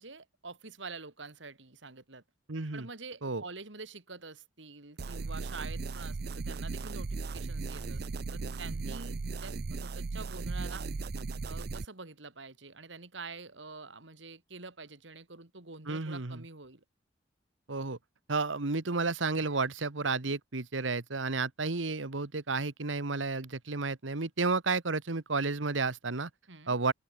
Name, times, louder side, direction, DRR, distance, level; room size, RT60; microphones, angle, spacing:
voice 1, 0.0-2.2 2.7-10.8 11.4-16.8 26.5-26.8, right 4 dB, 70° right, 2.7 m, -47 dB
voice 2, 2.5-2.9 3.2-3.4 15.9-16.4 17.7-18.0 18.3-26.3 26.7-26.9, right 3 dB, 90° right, 1.4 m, -32 dB
sound 1, 5.0-11.9, right 3 dB, 55° right, 0.6 m, -37 dB
open air
head